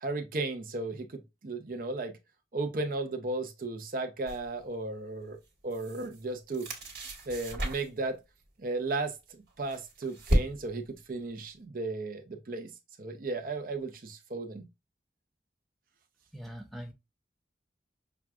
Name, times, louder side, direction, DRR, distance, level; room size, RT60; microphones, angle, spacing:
voice 1, 0.0-2.2 2.5-5.4 5.6-6.7 7.3-8.2 8.6-12.7 13.0-14.7, right 3 dB, 50° right, 0.6 m, -35 dB
sound 1, 4.2-4.5 5.4-6.2 6.5-8.1 9.2-10.9, equal, 65° right, 1.4 m, -32 dB
voice 2, 16.3-16.9, equal, ahead, 0.5 m, -42 dB
5.9 x 2.3 x 2.3 m
head